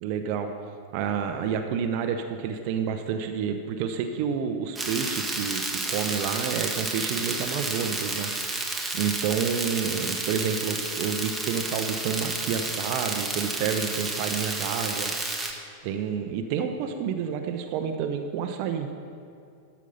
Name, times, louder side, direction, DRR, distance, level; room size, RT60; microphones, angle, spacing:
voice 1, 0.0-0.5 0.9-8.3 8.9-15.1 15.8-18.9, right 7 dB, 45° right, 6 dB, 0.7 m, -29 dB
sound 1, 4.8-15.5, right 2 dB, 5° right, 1.3 m, -31 dB
13.0 x 7.2 x 5.5 m, 2.6 s
figure-of-eight pair, 90°, 0 cm